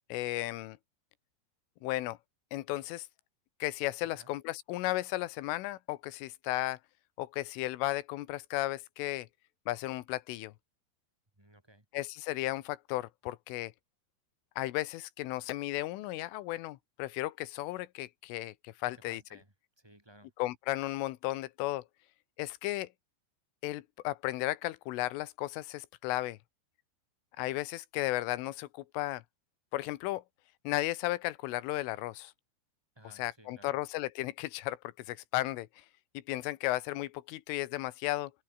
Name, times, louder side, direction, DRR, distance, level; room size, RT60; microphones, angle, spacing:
voice 1, 0.1-0.8 1.8-2.2 2.5-3.1 3.6-6.8 7.2-9.3 9.7-10.5 11.9-13.7 14.6-19.2 20.4-21.9 22.4-22.9 23.6-26.4 27.4-29.2 29.7-30.2 30.7-32.3 33.2-34.8 35.1-35.7 36.2-38.3, left 17 dB, 85° left, 3.6 m, -34 dB
voice 2, 11.4-11.8 18.8-20.3 32.9-33.8, right 1 dB, 5° right, 3.0 m, -59 dB
open air
omnidirectional pair, 5.6 m